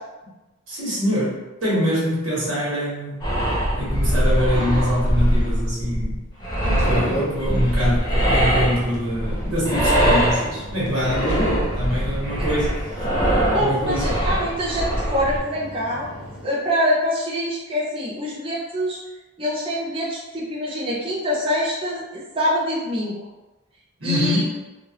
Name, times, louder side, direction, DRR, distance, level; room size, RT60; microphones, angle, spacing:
voice 1, 0.7-6.2 6.8-12.9 13.5-14.2 24.0-24.4, equal, 65° right, -8 dB, 1.3 m, -24 dB
sound 1, 3.2-15.4, equal, 20° left, 0.5 m, -22 dB
sound 2, 6.6-16.4, equal, 75° left, 1.0 m, -35 dB
voice 2, 13.4-16.1 16.4-19.0 19.4-23.2 24.0-24.4, equal, 25° right, -6 dB, 0.6 m, -25 dB
3.0 x 2.5 x 2.9 m, 1.1 s
head